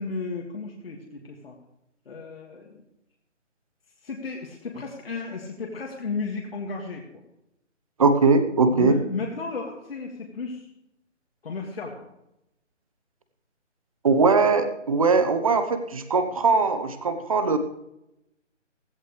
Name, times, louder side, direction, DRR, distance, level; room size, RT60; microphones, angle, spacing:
voice 1, 0.0-1.6 2.1-2.8 4.0-7.0 8.7-10.7 11.4-12.1, left 4 dB, 50° left, -1 dB, 2.1 m, -34 dB
voice 2, 8.0-9.0 14.0-17.6, right 4 dB, 30° right, 10 dB, 1.0 m, -20 dB
16.0 x 14.5 x 3.3 m, 0.85 s
figure-of-eight pair, 160°, 37 cm